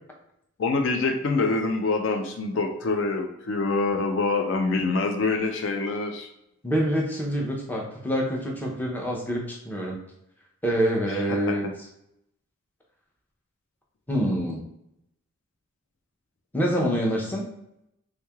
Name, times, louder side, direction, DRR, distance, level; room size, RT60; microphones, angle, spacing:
voice 1, 0.6-6.3 11.3-11.6, left 3 dB, 60° left, 4 dB, 0.3 m, -25 dB
voice 2, 6.6-10.0 10.6-11.7 14.1-14.6 16.5-17.5, equal, 10° left, -2 dB, 0.6 m, -26 dB
3.6 x 3.1 x 2.3 m, 0.81 s
head